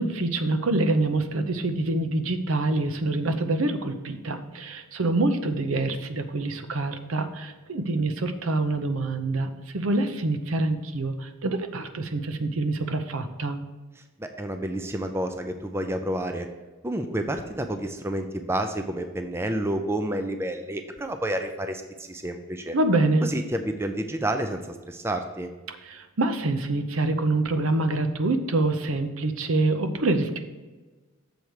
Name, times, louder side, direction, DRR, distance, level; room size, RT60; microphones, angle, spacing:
voice 1, 0.0-13.6 22.7-23.2 25.7-30.4, right 2 dB, 70° right, 8 dB, 0.7 m, -26 dB
voice 2, 14.0-16.5 16.8-22.8 23.2-25.5, right 1 dB, 10° right, 6 dB, 0.4 m, -30 dB
7.0 x 4.5 x 6.4 m, 1.2 s
head